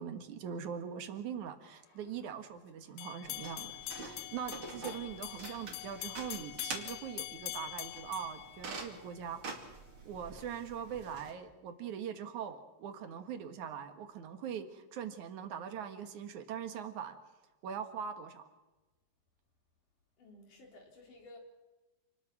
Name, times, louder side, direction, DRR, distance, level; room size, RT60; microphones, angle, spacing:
voice 1, 0.0-9.7 10.0-17.2 17.6-18.4, right 8 dB, 60° right, 8 dB, 2.8 m, -42 dB
sound 1, 3.0-9.2, left 15 dB, 80° left, 2.6 m, -44 dB
sound 2, 3.2-11.3, right 3 dB, 40° right, 3.1 m, -47 dB
voice 2, 20.2-21.4, left 2 dB, 60° left, 1 dB, 5.2 m, -55 dB
28.0 x 20.5 x 6.1 m, 1.1 s
omnidirectional pair, 4.1 m